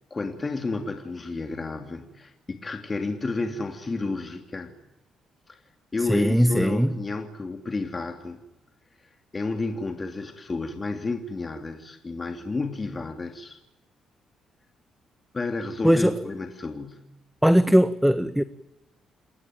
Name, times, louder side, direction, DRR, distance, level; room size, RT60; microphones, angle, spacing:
voice 1, 0.1-4.7 5.5-5.6 5.9-8.4 9.0-13.6 15.3-17.1, left 3 dB, 35° left, 6 dB, 3.1 m, -31 dB
voice 2, 6.1-6.9 15.8-16.1 17.4-18.4, equal, 5° right, 13 dB, 1.5 m, -19 dB
28.5 x 22.0 x 9.2 m, 0.96 s
hypercardioid pair, 50°, 0 cm